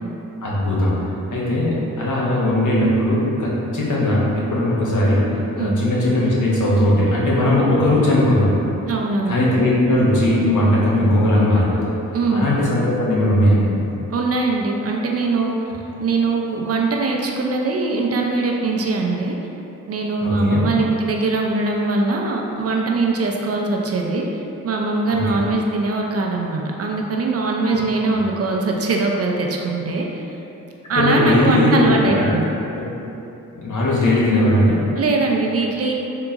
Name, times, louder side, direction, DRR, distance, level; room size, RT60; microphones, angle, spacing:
voice 1, 0.4-1.0 1.3-5.2 5.6-8.5 9.3-11.9 12.3-13.7 20.2-20.6 25.1-25.4 27.6-27.8 30.9-32.4 32.8-32.9 33.5-34.8, left 1 dB, 60° left, -6 dB, 0.9 m, -18 dB
voice 2, 8.9-9.4 12.1-12.5 14.1-15.6 16.0-19.4 19.9-24.3 24.6-30.2 30.9-32.5 35.0-35.9, right 3 dB, 45° right, 0 dB, 0.4 m, -21 dB
3.7 x 2.8 x 2.4 m, 2.9 s
supercardioid pair, 45°, 35 cm